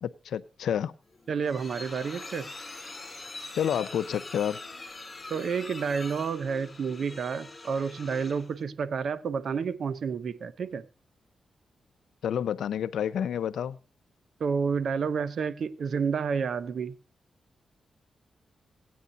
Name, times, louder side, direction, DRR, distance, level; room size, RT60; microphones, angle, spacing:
voice 1, 0.0-0.9 3.5-4.6 12.2-13.8, left 9 dB, 85° left, 0.5 m, -29 dB
sound 1, 1.1-8.6, left 3 dB, 30° left, 3.7 m, -43 dB
voice 2, 1.3-2.5 5.3-10.8 14.4-16.9, right 6 dB, 65° right, 0.9 m, -30 dB
17.0 x 9.5 x 4.0 m
cardioid pair, 85°, 0 cm